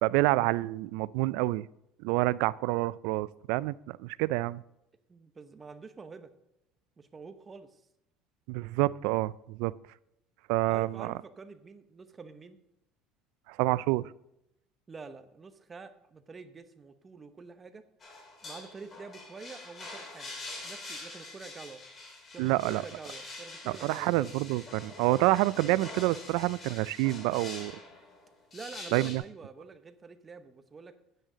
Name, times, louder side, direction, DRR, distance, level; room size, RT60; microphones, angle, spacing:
voice 1, 0.0-1.7 2.0-4.6 8.5-9.7 10.5-11.1 13.5-14.0 22.4-22.8 23.7-27.7 28.9-29.2, right 19 dB, 80° right, 19 dB, 0.3 m, -28 dB
voice 2, 5.1-6.3 7.0-7.8 10.7-12.6 14.9-17.8 18.4-21.8 22.3-24.2 28.5-31.0, right 4 dB, 20° right, 9 dB, 0.8 m, -47 dB
sound 1, 18.0-29.2, left 2 dB, 30° left, 2.6 m, -45 dB
10.0 x 9.1 x 3.8 m, 0.84 s
cardioid pair, 130°, 0 cm